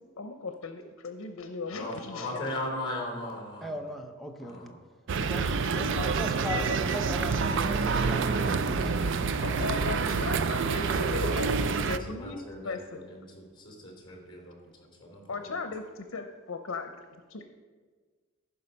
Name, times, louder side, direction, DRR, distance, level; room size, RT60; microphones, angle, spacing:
voice 1, 0.2-2.4 5.2-5.3 6.0-6.1 6.5-6.8 9.4-13.0 15.3-17.5, left 4 dB, 90° left, 7 dB, 0.7 m, -37 dB
voice 2, 1.7-3.7 4.4-4.7 9.0-9.9 10.8-11.8 12.1-15.6, left 1 dB, 25° left, 0 dB, 3.2 m, -39 dB
voice 3, 3.6-4.7 5.2-8.5 8.8-9.0, left 1 dB, ahead, 2 dB, 0.8 m, -38 dB
sound 1, 5.1-12.0, right 5 dB, 65° right, 0.5 m, -27 dB
sound 2, 6.2-9.8 10.3-10.4 11.4-12.2, right 1 dB, 30° right, 1.2 m, -41 dB
14.5 x 5.7 x 5.3 m, 1.5 s
head